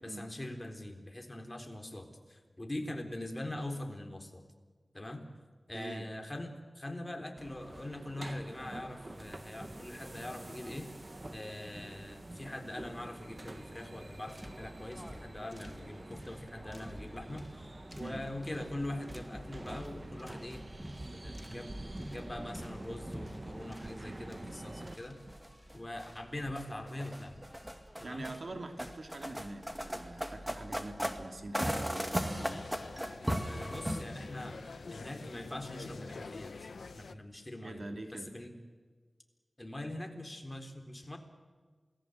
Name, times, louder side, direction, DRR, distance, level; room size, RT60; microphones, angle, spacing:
voice 1, 0.0-4.4 4.9-5.3 5.7-10.9 11.3-17.7 18.0-20.8 21.1-21.8 22.1-25.2 25.7-27.4 28.0-28.3 33.4-34.6 34.9-37.8 38.1-38.6 39.6-41.2, left 1 dB, 25° left, 5 dB, 3.9 m, -42 dB
voice 2, 5.7-6.1 18.0-18.2 28.0-32.7 37.6-38.3, right 2 dB, 60° right, 6 dB, 2.7 m, -44 dB
sound 1, 7.4-24.9, right 1 dB, 35° right, 1.7 m, -47 dB
sound 2, 14.2-34.0, equal, 10° right, 2.2 m, -41 dB
sound 3, 32.1-37.2, left 4 dB, 85° left, 1.1 m, -46 dB
28.0 x 19.5 x 8.1 m, 1.5 s
wide cardioid pair, 65°, 0 cm